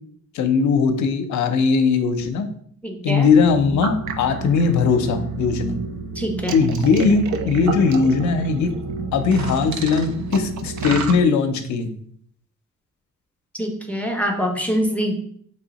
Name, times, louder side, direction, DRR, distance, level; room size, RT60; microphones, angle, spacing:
voice 1, 0.3-2.5 3.0-5.8 6.5-8.7 9.1-11.9, left 5 dB, 70° left, 8 dB, 0.6 m, -19 dB
voice 2, 2.8-3.3 6.2-6.6 13.6-15.1, equal, 5° left, 2 dB, 0.6 m, -24 dB
sound 1, 3.3-11.2, right 4 dB, 70° right, 0.5 m, -29 dB
3.2 x 2.7 x 4.0 m, 0.63 s
cardioid pair, 90°, 30 cm